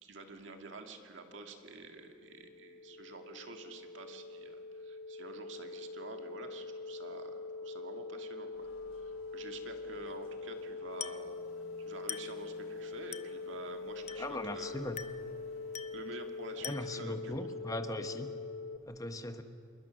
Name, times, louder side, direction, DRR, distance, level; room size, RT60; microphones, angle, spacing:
voice 1, 0.0-11.4 11.8-14.9 15.9-17.5, right 3 dB, 70° right, 4 dB, 2.0 m, -49 dB
sound 1, 1.8-18.8, left 3 dB, 50° left, 1.0 m, -44 dB
sound 2, 8.5-16.0, left 1 dB, 85° left, 6.2 m, -60 dB
Glass, 11.0-11.3 12.1-12.4 13.1-13.4 14.1-14.4 15.0-15.3 15.7-16.1 16.6-17.0, left 9 dB, 35° left, 0.6 m, -43 dB
voice 2, 14.2-15.0 16.6-18.3 18.9-19.4, left 1 dB, 15° left, 8 dB, 1.1 m, -39 dB
27.0 x 22.0 x 6.4 m, 2.5 s
head